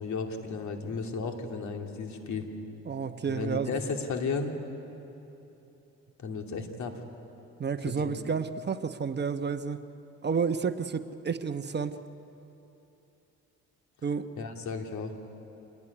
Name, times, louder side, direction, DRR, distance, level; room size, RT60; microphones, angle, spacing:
voice 1, 0.0-2.5 3.2-4.5 6.2-7.0 7.9-8.1 14.4-15.1, left 4 dB, 70° left, 3 dB, 2.7 m, -34 dB
voice 2, 2.9-3.7 7.6-9.8 10.2-12.0 14.0-14.3, right 6 dB, 35° right, 9 dB, 1.0 m, -30 dB
26.0 x 19.5 x 9.8 m, 2.9 s
cardioid pair, 90°, 30 cm